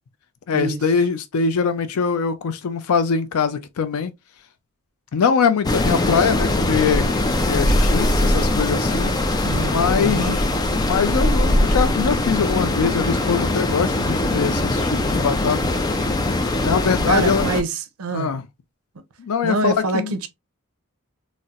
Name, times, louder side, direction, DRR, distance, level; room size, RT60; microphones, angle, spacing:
voice 1, 0.5-4.1 5.1-7.0 7.5-9.1 9.6-10.4 10.9-15.6 16.6-17.4 18.1-18.4 19.2-20.1, left 6 dB, 90° left, 0.4 m, -22 dB
sound 1, 5.6-17.6, left 1 dB, 20° left, 0.3 m, -21 dB
voice 2, 9.3-10.4 17.1-18.3 19.4-20.3, right 3 dB, 85° right, 0.5 m, -25 dB
4.0 x 2.0 x 2.4 m
head